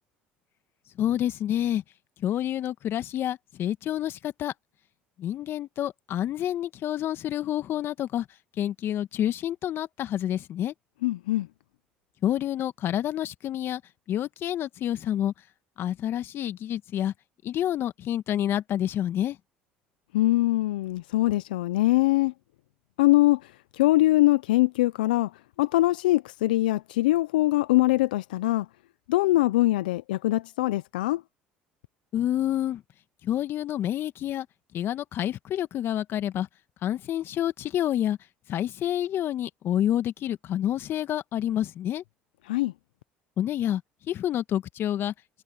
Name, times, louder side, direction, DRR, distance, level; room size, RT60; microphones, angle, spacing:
voice 1, 1.0-1.8 2.2-4.5 5.2-8.3 8.6-10.7 12.2-13.8 14.1-15.3 15.8-17.1 17.4-19.4 32.1-32.8 33.2-34.5 34.7-36.5 36.8-38.2 38.5-42.0 43.4-43.8 44.1-45.1, left 11 dB, 55° left, 2.0 m, -28 dB
voice 2, 11.0-11.5 20.1-22.3 23.0-25.3 25.6-28.7 29.1-31.2 42.5-42.7, left 17 dB, 80° left, 0.7 m, -23 dB
hypercardioid pair, 65°, 5 cm